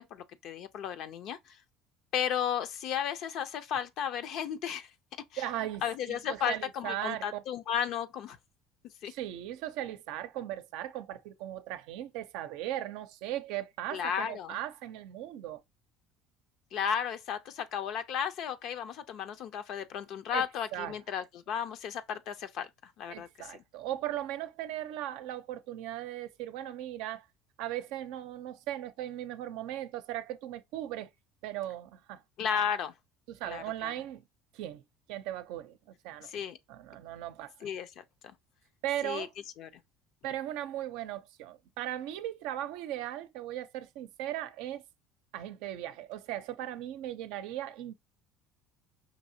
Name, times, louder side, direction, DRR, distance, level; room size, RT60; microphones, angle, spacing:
voice 1, 0.0-1.6 2.1-4.9 5.3-5.4 5.8-8.4 8.8-9.1 13.9-14.6 16.7-23.6 32.4-32.9 33.5-33.9 36.2-36.6 37.6-38.4 39.0-39.3 39.6-39.7, left 8 dB, 65° left, 0.5 m, -34 dB
voice 2, 5.4-7.4 9.1-15.6 20.3-20.4 20.7-21.0 23.1-27.3 27.6-31.1 31.4-32.2 33.3-34.2 34.5-34.8 35.1-36.3 36.7-37.5 38.8-39.3 40.2-44.8 45.3-47.9, right 13 dB, 75° right, 0.5 m, -38 dB
5.2 x 2.7 x 2.7 m
supercardioid pair, 85°, 0 cm